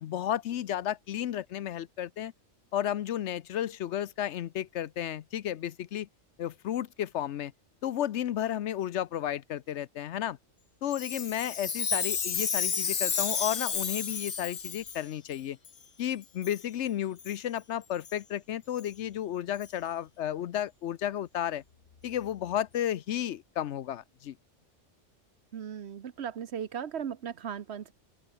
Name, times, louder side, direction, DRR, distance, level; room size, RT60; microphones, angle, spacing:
voice 1, 0.0-2.3 2.7-6.1 6.4-7.5 7.8-10.4 10.8-15.6 16.0-21.6 22.0-24.4, left 11 dB, 70° left, 0.9 m, -33 dB
Chime, 10.9-15.0 15.7-15.8 16.4-16.6 17.2-17.4 18.0-18.1 18.8-18.9 19.6-19.7, left 6 dB, 90° left, 2.0 m, -31 dB
voice 2, 25.5-27.9, right 8 dB, 65° right, 1.2 m, -37 dB
open air
omnidirectional pair, 1.2 m